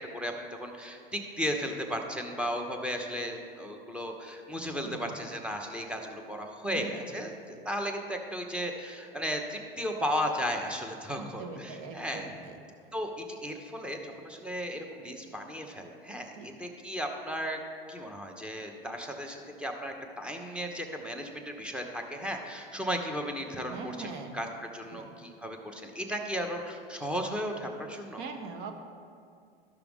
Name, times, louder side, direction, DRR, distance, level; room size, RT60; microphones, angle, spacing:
voice 1, 0.6-7.3 7.6-12.3 12.9-17.6 17.9-24.5 24.7-28.2, equal, 5° right, 3 dB, 0.9 m, -35 dB
voice 2, 4.8-5.2 6.7-7.1 7.5-7.6 11.1-12.6 16.3-16.5 23.6-24.4 24.9-25.1 28.2-28.7, right 4 dB, 50° right, 5 dB, 1.2 m, -42 dB
12.5 x 5.8 x 3.6 m, 2.3 s
hypercardioid pair, 100°, 30 cm